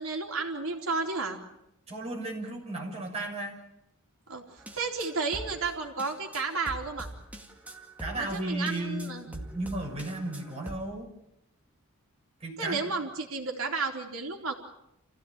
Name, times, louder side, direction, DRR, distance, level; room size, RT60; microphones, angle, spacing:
voice 1, 0.0-1.4 4.3-7.1 8.2-9.3 12.6-14.5, right 4 dB, 70° right, 2 dB, 3.9 m, -32 dB
voice 2, 1.9-3.6 8.0-11.1 12.4-12.8, right 2 dB, 30° right, -1 dB, 7.0 m, -34 dB
sound 1, 4.6-10.8, right 1 dB, 5° right, 2.2 m, -44 dB
28.5 x 16.0 x 9.0 m, 0.84 s
head